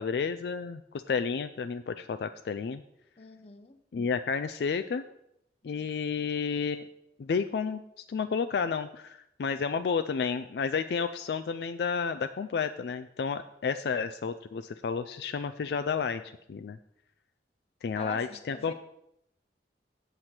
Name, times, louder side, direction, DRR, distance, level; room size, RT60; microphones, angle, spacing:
voice 1, 0.0-2.8 3.9-5.0 5.6-6.8 7.2-16.2 16.5-16.8 17.8-18.7, left 5 dB, 65° left, 9 dB, 0.3 m, -31 dB
voice 2, 3.2-3.8 17.9-18.7, left 3 dB, 35° left, 9 dB, 0.7 m, -44 dB
8.0 x 7.6 x 4.4 m, 0.78 s
head